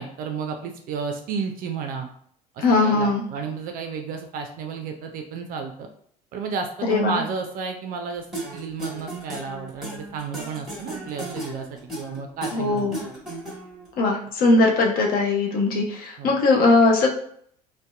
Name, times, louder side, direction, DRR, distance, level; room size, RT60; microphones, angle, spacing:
voice 1, 0.0-2.1 2.5-5.9 6.3-13.1 16.2-16.3, right 5 dB, 50° right, 4 dB, 0.4 m, -32 dB
voice 2, 2.6-3.2 6.8-7.2 12.5-13.0 14.0-17.1, left 3 dB, 50° left, 1 dB, 0.6 m, -20 dB
sound 1, 8.3-13.9, right 1 dB, ahead, 1.2 m, -35 dB
2.6 x 2.1 x 2.2 m, 0.63 s
hypercardioid pair, 60°, 19 cm